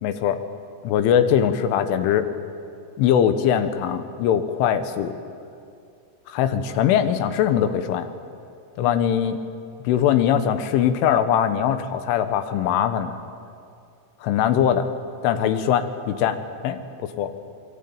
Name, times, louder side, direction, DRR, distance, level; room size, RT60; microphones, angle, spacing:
voice 1, 0.0-0.4 0.8-2.3 3.0-5.1 6.3-8.1 8.8-9.4 9.9-13.2 14.2-14.9 15.2-16.4 16.6-17.3, left 9 dB, 75° left, 9 dB, 3.7 m, -21 dB
27.5 x 22.5 x 8.8 m, 2.4 s
omnidirectional pair, 5.8 m